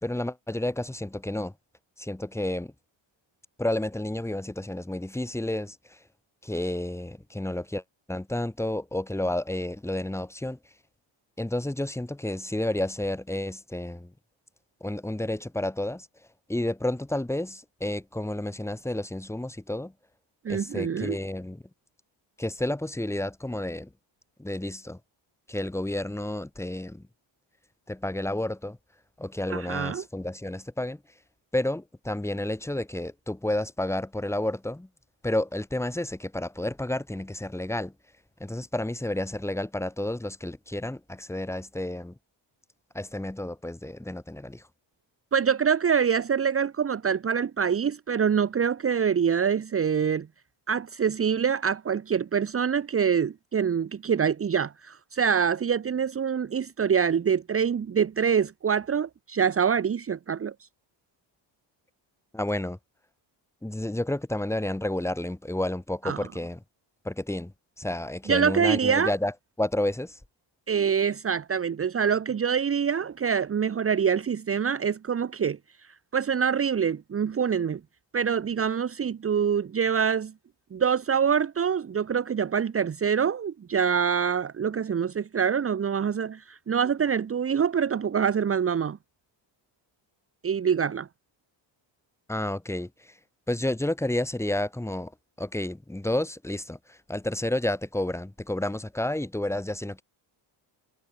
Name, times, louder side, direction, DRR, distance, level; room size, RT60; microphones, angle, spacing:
voice 1, 0.0-1.5 2.0-2.7 3.6-6.0 6.4-7.8 8.1-10.6 11.4-14.1 14.8-16.1 16.5-19.9 20.5-21.6 22.4-23.9 24.4-25.0 25.5-27.1 27.9-28.8 29.2-31.0 31.5-34.9 35.2-37.9 38.4-42.1 42.9-44.7 62.3-62.8 63.6-66.6 67.0-67.5 67.8-70.2 92.3-93.2 93.5-95.1 95.4-100.0, left 1 dB, 5° left, 4.9 m, -31 dB
voice 2, 20.4-21.2 29.5-30.0 45.3-50.3 50.7-60.7 66.0-66.3 68.3-69.1 70.7-77.8 78.1-80.3 80.7-89.0 90.4-91.1, right 7 dB, 30° right, 1.5 m, -25 dB
cardioid pair, 175°, 47 cm